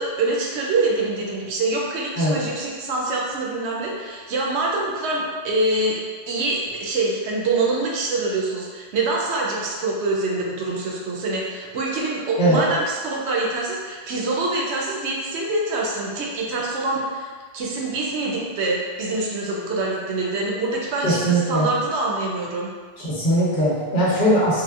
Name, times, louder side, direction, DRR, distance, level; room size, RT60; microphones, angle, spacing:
voice 1, 0.0-6.0 6.3-22.7, right 2 dB, 85° right, -3 dB, 0.9 m, -25 dB
voice 2, 21.0-21.7 23.0-24.6, right 1 dB, 55° left, -7 dB, 0.9 m, -20 dB
3.4 x 2.1 x 2.4 m, 1.5 s
omnidirectional pair, 1.1 m